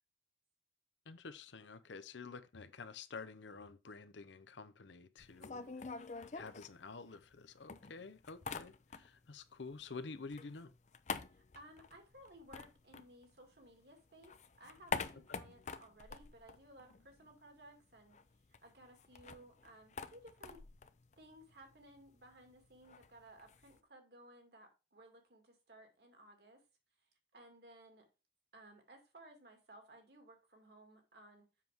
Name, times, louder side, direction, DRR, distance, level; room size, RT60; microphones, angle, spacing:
voice 1, 1.1-5.6 6.3-10.7, left 4 dB, 85° left, 0.7 m, -49 dB
sound 1, 5.2-7.4 7.7-9.3 9.6-13.8 14.1-17.4 17.6-17.7 18.0-23.8, left 4 dB, 40° left, 0.5 m, -46 dB
voice 2, 5.4-5.9 11.3-18.2 18.6-20.6 21.2-26.6 27.0-28.1 28.5-31.5, right 1 dB, 65° right, 2.1 m, -59 dB
7.5 x 6.1 x 3.5 m
head